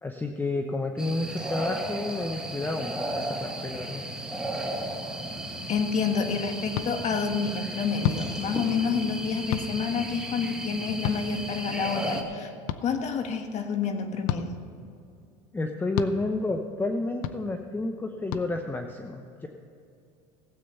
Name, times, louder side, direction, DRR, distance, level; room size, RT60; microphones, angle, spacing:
voice 1, 0.0-4.0 15.5-19.5, left 2 dB, 10° left, 5 dB, 0.8 m, -30 dB
sound 1, 1.0-12.2, right 1 dB, 5° right, 1.6 m, -35 dB
voice 2, 5.7-12.5 12.8-14.5, left 5 dB, 45° left, 6 dB, 1.5 m, -28 dB
sound 2, 6.7-6.9 8.0-8.2 9.5-9.7 11.0-11.2 12.7-12.8 14.3-14.5 16.0-16.1 17.2-17.4 18.3-18.5, left 11 dB, 70° left, 0.7 m, -28 dB
16.0 x 8.5 x 5.6 m, 2.5 s
supercardioid pair, 105°, 16 cm